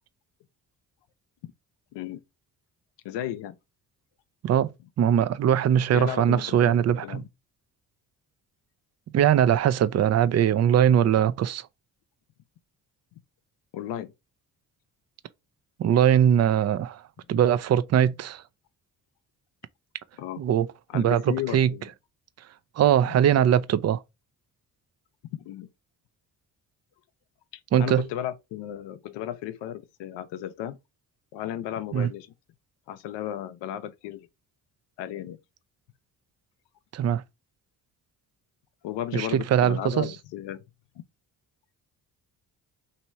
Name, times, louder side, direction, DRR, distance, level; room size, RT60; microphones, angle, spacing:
voice 1, 1.9-2.2 3.0-3.6 5.9-7.3 13.7-14.1 20.2-20.4 20.9-21.9 25.3-25.7 27.8-30.8 31.3-32.3 32.9-34.3 35.0-35.4 38.8-40.6, left 11 dB, 80° left, 0.6 m, -34 dB
voice 2, 5.0-7.2 9.1-11.7 15.8-17.0 17.3-18.4 20.4-20.7 20.9-21.7 22.8-24.0 27.7-28.0 31.9-32.1 36.9-37.2 39.1-40.1, right 9 dB, 40° right, 0.4 m, -21 dB
3.0 x 2.8 x 4.4 m
supercardioid pair, 50°, 42 cm